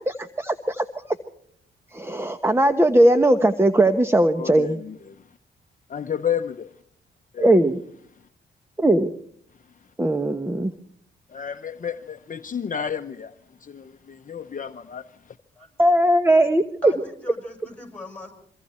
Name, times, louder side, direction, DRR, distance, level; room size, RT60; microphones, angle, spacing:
voice 1, 0.1-0.8 1.9-4.8 7.4-7.8 8.8-9.1 10.0-10.7 15.8-16.9, right 1 dB, 10° right, 9 dB, 1.2 m, -19 dB
voice 2, 4.4-5.2 5.9-6.7 7.3-7.5 11.3-13.3 13.6-15.4, left 8 dB, 40° left, 8 dB, 0.9 m, -31 dB
voice 3, 16.8-18.4, left 2 dB, 5° left, 4 dB, 7.4 m, -41 dB
26.5 x 24.0 x 4.4 m, 0.64 s
cardioid pair, 80°, 20 cm